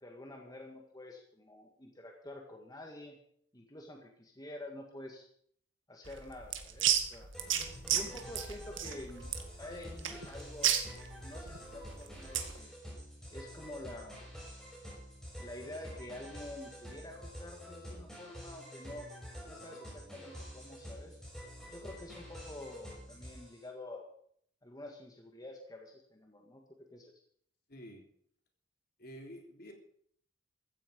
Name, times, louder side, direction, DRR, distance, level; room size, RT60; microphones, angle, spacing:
voice 1, 0.0-3.2 3.5-5.3 5.9-7.3 7.9-9.3 9.6-10.7 11.2-12.7 13.3-14.4 15.4-19.1 19.5-21.2 21.7-24.1 24.6-26.6 26.9-27.1, left 1 dB, 20° left, 2 dB, 1.8 m, -48 dB
sound 1, 6.0-12.6, right 10 dB, 90° right, 1.9 m, -33 dB
sound 2, 7.3-23.6, equal, 5° left, 6.9 m, -48 dB
voice 2, 27.7-28.1 29.0-29.7, equal, 50° left, 3 dB, 3.4 m, -49 dB
15.5 x 14.5 x 5.3 m, 0.64 s
head